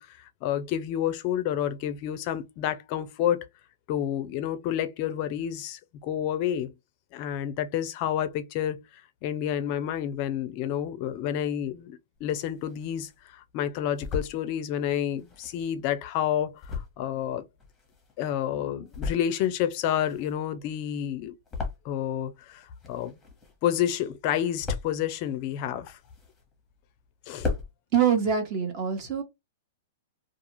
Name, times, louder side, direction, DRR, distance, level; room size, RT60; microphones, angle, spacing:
voice 1, 0.0-3.4 3.9-6.7 7.1-17.4 18.2-21.3 21.8-23.2 23.6-26.0 27.3-27.5, left 10 dB, 40° left, 0.4 m, -29 dB
sound 1, 12.2-13.2 13.6-14.4 15.1-18.3 18.7-19.5 19.8-22.3 22.5-23.8 24.1-25.1 25.6-26.7 27.0-27.1 27.3-27.7, left 4 dB, 5° left, 1.0 m, -36 dB
voice 2, 27.9-29.2, right 8 dB, 35° right, 1.0 m, -24 dB
2.3 x 2.3 x 3.0 m
hypercardioid pair, 150°, 0 cm